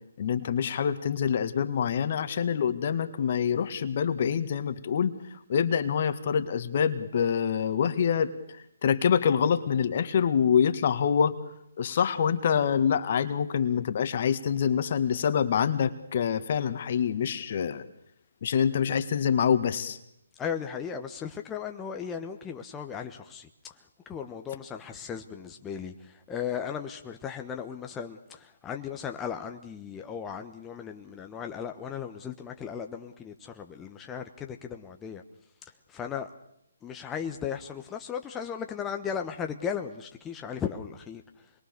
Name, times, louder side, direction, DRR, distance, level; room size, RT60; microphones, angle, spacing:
voice 1, 0.2-5.1 5.5-11.4 11.8-17.8 18.4-20.0, left 7 dB, 45° left, 1.9 m, -26 dB
voice 2, 20.4-23.7 24.1-35.2 35.9-36.3 36.8-41.2, left 7 dB, 15° left, 1.2 m, -36 dB
27.0 x 22.0 x 6.8 m
figure-of-eight pair, 145°, 0 cm